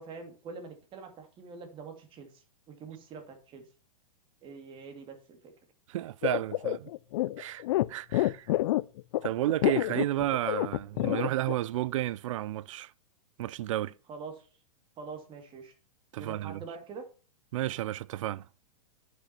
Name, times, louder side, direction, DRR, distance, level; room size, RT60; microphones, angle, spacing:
voice 1, 0.0-3.6 4.4-5.5 14.1-14.5 15.0-15.7 16.1-17.0, right 5 dB, 25° right, 2.4 m, -45 dB
voice 2, 5.9-6.9 7.4-8.5 9.2-12.9 13.4-13.9 16.1-16.6 17.5-18.5, right 14 dB, 60° right, 0.4 m, -32 dB
sound 1, 6.2-11.5, left 16 dB, 55° left, 0.4 m, -28 dB
8.2 x 6.2 x 5.5 m
hypercardioid pair, 125°, 19 cm